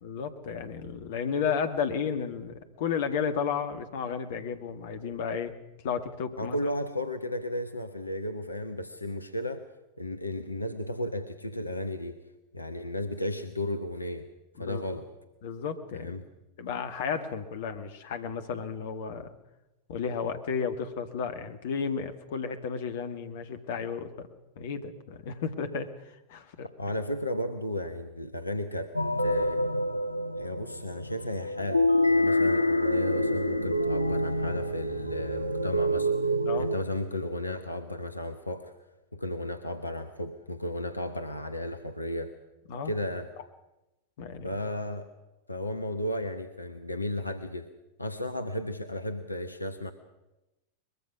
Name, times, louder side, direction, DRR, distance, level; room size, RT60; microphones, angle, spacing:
voice 1, 0.0-5.5 5.8-6.6 14.6-14.8 15.4-16.1 16.6-19.3 19.9-24.3 24.6-26.7 36.4-36.7 42.7-42.9 44.2-44.5, left 6 dB, 55° left, 9 dB, 1.9 m, -33 dB
voice 2, 6.4-9.7 10.0-12.2 12.5-14.3 14.6-15.1 15.9-16.3 26.8-29.6 30.4-38.7 39.1-42.4 42.8-43.3 44.4-45.1 45.5-47.7 48.0-49.9, left 1 dB, 85° left, 9 dB, 1.1 m, -34 dB
sound 1, 28.9-36.8, equal, 85° right, 0.9 m, -27 dB
22.5 x 22.0 x 6.1 m, 0.98 s
figure-of-eight pair, 90°, 0 cm